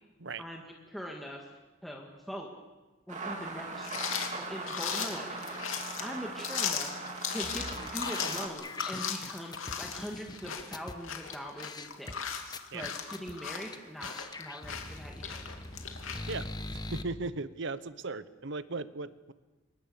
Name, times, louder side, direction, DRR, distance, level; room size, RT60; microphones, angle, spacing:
voice 1, 0.4-1.5 1.8-2.5 3.1-3.9 4.4-7.7 7.9-12.2 12.7-15.4, equal, ahead, -1 dB, 2.0 m, -42 dB
sound 1, 3.1-8.5, right 3 dB, 35° right, 3.0 m, -40 dB
sound 2, 3.8-16.4, left 7 dB, 80° left, 2.9 m, -37 dB
sound 3, 7.4-10.9 11.3-11.4 11.6-12.1 12.5-13.3 13.7-13.8 14.0-17.0, left 2 dB, 20° left, 1.0 m, -42 dB
voice 2, 16.3-19.3, right 3 dB, 60° right, 14 dB, 1.0 m, -38 dB
26.0 x 23.0 x 7.0 m, 1.2 s
head